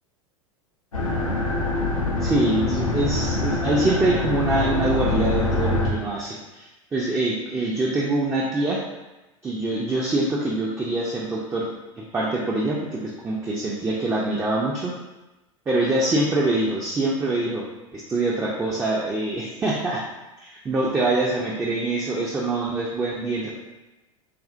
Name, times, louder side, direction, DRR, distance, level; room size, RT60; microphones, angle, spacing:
sound 1, 0.9-5.9, left 2 dB, 90° left, 0.5 m, -24 dB
voice 1, 2.2-8.8 9.4-11.7 12.0-14.9 15.7-17.6 17.9-20.0 20.4-23.5, right 2 dB, 15° right, -4 dB, 0.4 m, -24 dB
2.6 x 2.5 x 2.4 m, 1.0 s
figure-of-eight pair, 85°, 17 cm